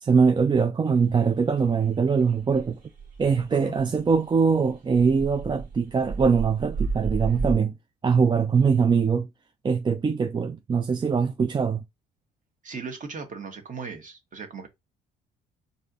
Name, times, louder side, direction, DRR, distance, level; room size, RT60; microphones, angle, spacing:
voice 1, 0.0-2.8 3.2-7.7 8.0-9.3 9.6-11.8, right 5 dB, 20° right, 0.4 m, -22 dB
sound 1, 1.0-7.5, right 4 dB, 75° right, 1.8 m, -33 dB
voice 2, 12.6-14.7, right 5 dB, 35° right, 1.3 m, -37 dB
4.6 x 2.7 x 2.7 m
hypercardioid pair, 50°, 21 cm